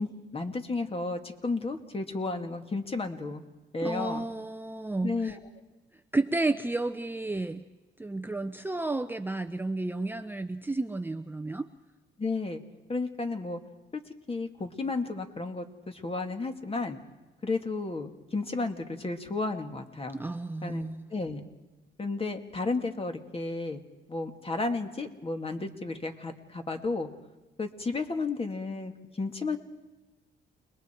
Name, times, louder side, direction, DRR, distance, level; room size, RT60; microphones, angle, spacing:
voice 1, 0.0-3.4 3.7-4.2 5.0-5.4 12.2-12.6 12.9-13.6 13.9-14.0 14.3-17.0 17.4-20.2 20.6-21.4 22.0-23.8 24.1-27.1 27.6-29.6, left 3 dB, 30° left, 5 dB, 2.4 m, -33 dB
voice 2, 3.8-5.4 6.1-7.6 8.0-11.7 20.1-21.0, right 2 dB, 10° right, 9 dB, 0.8 m, -32 dB
29.5 x 21.0 x 4.6 m, 1.1 s
cardioid pair, 90°, 20 cm